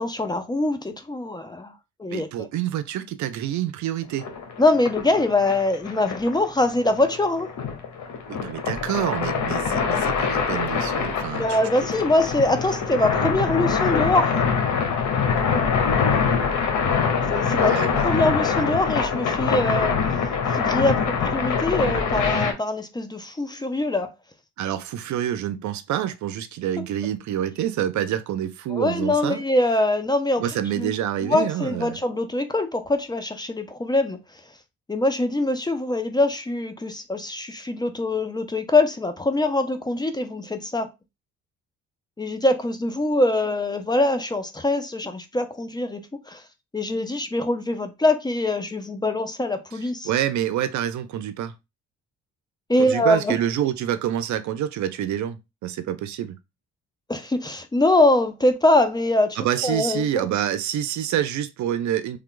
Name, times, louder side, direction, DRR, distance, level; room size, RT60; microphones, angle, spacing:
voice 1, 0.0-1.7 2.0-2.5 4.6-7.5 11.4-14.4 17.3-20.2 20.4-24.1 26.8-26.9 28.7-30.4 30.8-34.2 34.9-40.9 42.2-46.4 46.7-50.1 52.7-53.4 57.1-60.3, left 2 dB, 15° left, 0.6 m, -23 dB
voice 2, 2.1-4.2 8.3-11.5 17.6-18.1 24.6-29.4 30.4-32.0 50.0-51.5 52.8-56.4 59.4-62.2, right 11 dB, 70° right, 0.5 m, -27 dB
sound 1, 4.2-22.5, left 6 dB, 75° left, 1.0 m, -24 dB
3.3 x 2.3 x 3.7 m
cardioid pair, 90°, 30 cm